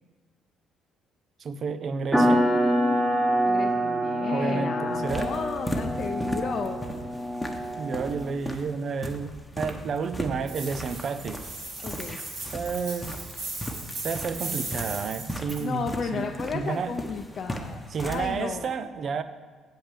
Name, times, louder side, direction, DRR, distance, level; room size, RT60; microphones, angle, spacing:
voice 1, 1.4-2.5 4.3-5.3 7.8-11.4 12.5-13.2 14.0-15.8 16.1-16.9 17.9-19.2, right 5 dB, 55° right, 11 dB, 0.6 m, -31 dB
sound 1, 2.1-8.3, equal, 15° right, 1.5 m, -26 dB
voice 2, 3.4-6.8 11.8-12.2 15.6-18.7, left 5 dB, 55° left, 3 dB, 0.5 m, -33 dB
sound 2, 4.9-18.3, equal, 5° left, 1.0 m, -37 dB
sound 3, 10.5-15.6, right 3 dB, 70° right, 2.8 m, -37 dB
7.4 x 5.1 x 7.3 m, 1.4 s
supercardioid pair, 75°, 0 cm